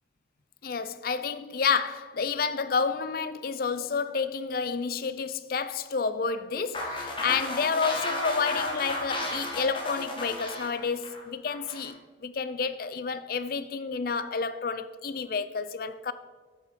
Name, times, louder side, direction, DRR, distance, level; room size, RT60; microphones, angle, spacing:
voice 1, 0.6-16.1, left 5 dB, 50° left, 0.4 m, -30 dB
sound 1, 6.7-11.9, left 1 dB, 25° left, 1.4 m, -33 dB
7.6 x 7.3 x 5.1 m
head